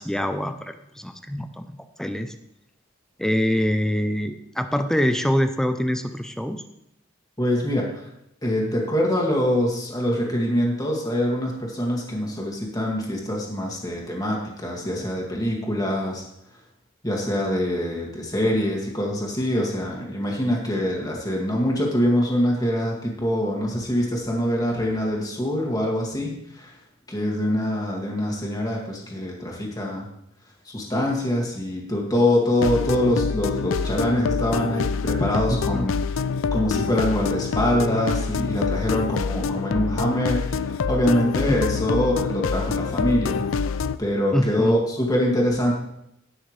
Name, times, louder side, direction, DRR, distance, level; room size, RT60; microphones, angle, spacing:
voice 1, 0.0-2.3 3.2-6.6 35.5-35.9 44.3-44.7, equal, 5° left, 8 dB, 0.5 m, -25 dB
voice 2, 7.4-8.1 8.4-16.2 17.0-26.7 27.1-30.1 30.7-36.0 36.5-43.4 44.0-45.7, left 1 dB, 20° left, -2 dB, 2.1 m, -24 dB
sound 1, 32.6-44.0, left 5 dB, 85° left, 0.4 m, -26 dB
17.5 x 6.4 x 3.3 m, 0.79 s
head